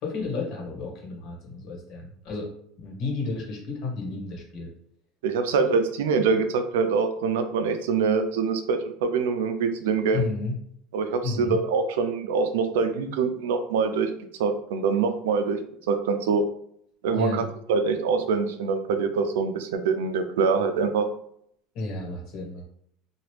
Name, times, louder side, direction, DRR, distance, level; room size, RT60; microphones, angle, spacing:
voice 1, 0.0-2.5 2.8-4.7 10.1-10.6 11.2-11.6 17.1-17.4 21.7-22.7, left 3 dB, 50° left, -1 dB, 1.2 m, -32 dB
voice 2, 5.2-10.3 10.9-14.1 14.4-15.6 15.9-16.4 17.0-21.1, right 5 dB, 90° right, 8 dB, 0.4 m, -24 dB
2.9 x 2.4 x 3.2 m, 0.69 s
supercardioid pair, 120°, 0 cm